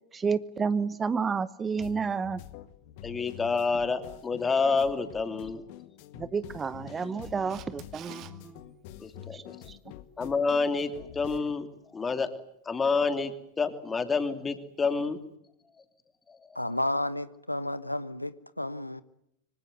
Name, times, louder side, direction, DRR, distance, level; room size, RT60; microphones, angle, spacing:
voice 1, 0.1-2.4 6.2-8.6 9.3-9.8, right 5 dB, 15° right, 16 dB, 1.0 m, -30 dB
sound 1, 1.8-11.4, left 12 dB, 45° left, 1.8 m, -47 dB
voice 2, 3.0-5.6 9.0-9.6 10.2-12.3 12.6-15.2 16.3-16.4, left 4 dB, 15° left, 9 dB, 2.9 m, -28 dB
Camera, 7.5-8.3 15.0-15.1, right 12 dB, 35° right, 2.1 m, -47 dB
voice 3, 16.5-19.0, left 1 dB, 85° left, 15 dB, 1.1 m, -32 dB
26.0 x 25.0 x 8.1 m, 0.78 s
figure-of-eight pair, 90°, 0 cm